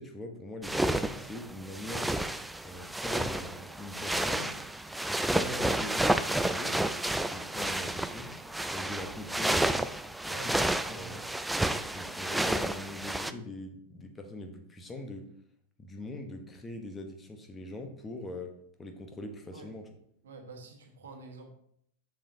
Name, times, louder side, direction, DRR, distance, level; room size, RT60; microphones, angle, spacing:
voice 1, 0.0-2.1 2.6-4.6 5.1-6.8 7.3-8.3 8.7-9.8 10.2-11.3 11.8-15.3 15.8-18.5 18.8-19.9, left 1 dB, 15° left, 4 dB, 1.0 m, -42 dB
sound 1, 0.6-13.3, right 1 dB, 5° right, 0.3 m, -31 dB
voice 2, 10.8-11.2 19.5-19.7 20.2-21.5, right 3 dB, 65° right, 2 dB, 1.4 m, -47 dB
7.3 x 7.1 x 2.8 m, 0.69 s
figure-of-eight pair, 90°, 0 cm